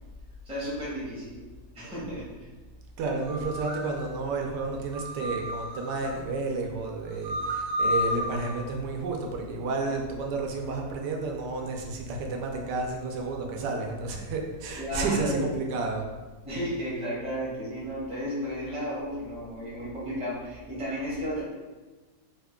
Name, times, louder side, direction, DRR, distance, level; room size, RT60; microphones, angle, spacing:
voice 1, 0.4-1.4 1.7-2.5 14.7-15.7 16.4-21.4, equal, 5° right, -7 dB, 0.5 m, -33 dB
voice 2, 3.0-16.0, right 3 dB, 85° right, 1 dB, 1.2 m, -31 dB
sound 1, 3.2-3.9 4.9-6.1 7.1-8.5, left 1 dB, 60° right, 0.8 m, -31 dB
3.3 x 2.2 x 3.5 m, 1.3 s
omnidirectional pair, 1.8 m